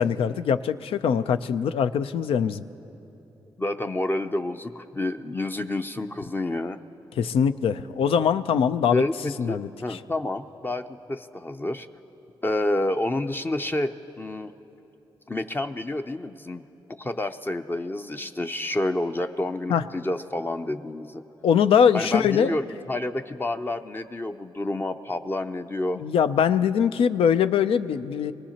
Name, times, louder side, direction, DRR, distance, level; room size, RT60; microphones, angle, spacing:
voice 1, 0.0-2.6 7.2-9.0 9.4-10.0 19.7-19.8 21.4-22.6 26.0-28.3, left 7 dB, 80° left, 11 dB, 0.4 m, -22 dB
voice 2, 3.6-6.8 8.9-11.9 12.4-14.5 15.3-16.6 17.0-21.2 21.9-26.0, left 1 dB, 20° left, 7 dB, 0.5 m, -29 dB
24.5 x 18.5 x 2.9 m, 2.9 s
cardioid pair, 70°, 9 cm